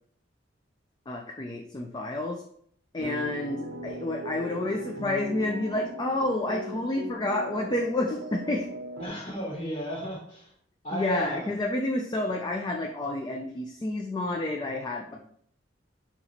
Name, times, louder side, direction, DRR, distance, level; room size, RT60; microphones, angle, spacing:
voice 1, 1.1-2.4 2.9-8.7 10.9-15.2, left 2 dB, 25° left, 1 dB, 0.4 m, -30 dB
sound 1, 3.0-9.1, right 1 dB, 80° right, 0.6 m, -38 dB
voice 2, 9.0-10.5 10.8-11.6 15.1-15.2, equal, 45° left, -5 dB, 1.5 m, -34 dB
4.2 x 2.9 x 4.1 m, 0.65 s
head